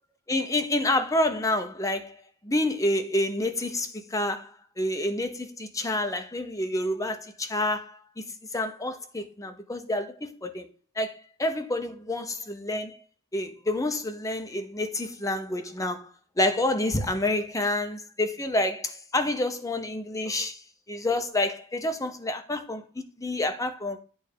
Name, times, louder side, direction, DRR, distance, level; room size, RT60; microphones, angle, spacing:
voice 1, 0.3-2.2 2.4-8.2 8.5-10.7 11.0-13.0 13.3-16.1 16.4-20.6 20.9-22.8 23.2-24.0, left 1 dB, 15° left, 0.9 m, -28 dB
8.9 x 3.4 x 6.7 m
head